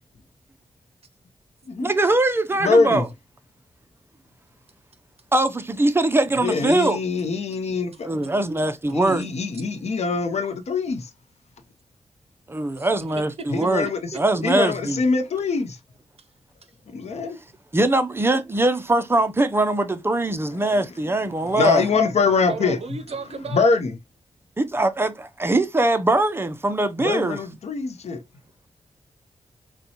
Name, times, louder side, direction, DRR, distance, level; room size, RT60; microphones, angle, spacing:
voice 1, 1.8-3.1 5.3-7.0 8.0-9.3 12.5-13.9 14.1-15.0 17.7-21.8 24.6-27.4, right 2 dB, 20° right, 0.5 m, -22 dB
voice 2, 2.6-3.1 6.4-8.1 8.9-11.1 13.5-14.0 14.4-15.8 16.9-17.4 20.8-20.9 21.4-22.8 23.5-23.9 27.0-28.2, left 4 dB, 65° left, 0.7 m, -23 dB
voice 3, 22.5-23.7, right 4 dB, 60° right, 0.7 m, -34 dB
4.0 x 2.2 x 2.8 m
cardioid pair, 75°, 12 cm